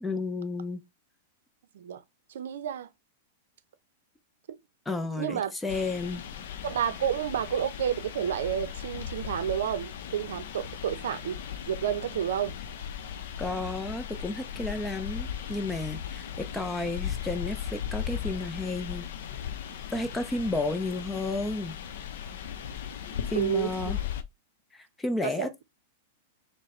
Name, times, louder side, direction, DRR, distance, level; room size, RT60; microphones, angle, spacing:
voice 1, 0.0-0.8 4.9-6.2 13.4-19.1 19.9-21.8 23.3-24.0 24.7-25.6, left 2 dB, 10° left, 0.6 m, -32 dB
voice 2, 2.3-2.9 5.2-5.5 6.6-12.6 23.3-24.0 25.2-25.5, right 9 dB, 75° right, 0.5 m, -30 dB
sound 1, 5.7-24.2, left 9 dB, 70° left, 0.6 m, -37 dB
4.0 x 2.1 x 4.2 m
hypercardioid pair, 135°, 0 cm